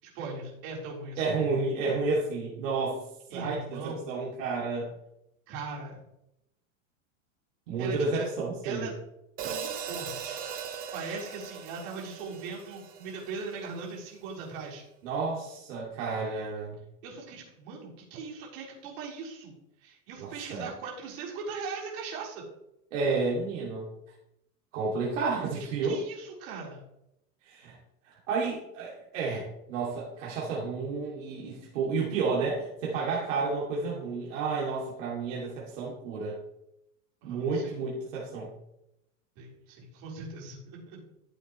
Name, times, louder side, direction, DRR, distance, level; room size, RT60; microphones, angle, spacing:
voice 1, 0.0-1.2 3.3-4.1 5.5-6.0 7.8-8.3 8.6-8.9 9.4-10.4 10.9-14.8 16.1-16.2 17.0-19.5 19.8-22.4 25.8-26.8 37.2-37.7 39.4-41.0, right 4 dB, 45° right, -5 dB, 4.1 m, -39 dB
voice 2, 1.2-3.0 3.3-4.9 7.7-8.9 15.0-16.8 20.2-20.7 22.9-23.9 24.7-26.0 27.4-27.8 28.0-36.4 37.2-38.5, right 4 dB, 65° right, -4 dB, 2.7 m, -31 dB
Hi-hat, 9.4-13.7, right 7 dB, 20° right, 0.8 m, -39 dB
13.5 x 7.7 x 3.1 m, 0.84 s
supercardioid pair, 170°, 40 cm